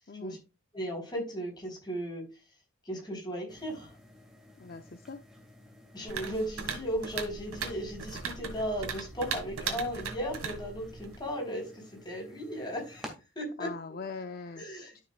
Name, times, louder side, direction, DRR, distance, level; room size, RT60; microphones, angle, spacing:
voice 1, 0.7-2.2 2.8-4.0 5.9-13.1 13.4-13.7 14.6-15.0, equal, 20° left, 0 dB, 4.0 m, -36 dB
sound 1, 3.5-13.1, equal, ahead, 2.1 m, -53 dB
voice 2, 4.6-5.2 13.6-15.0, left 4 dB, 40° left, 8 dB, 0.5 m, -42 dB
sound 2, 6.1-11.3, right 5 dB, 75° right, 2.0 m, -38 dB
12.5 x 6.5 x 2.4 m, 0.29 s
head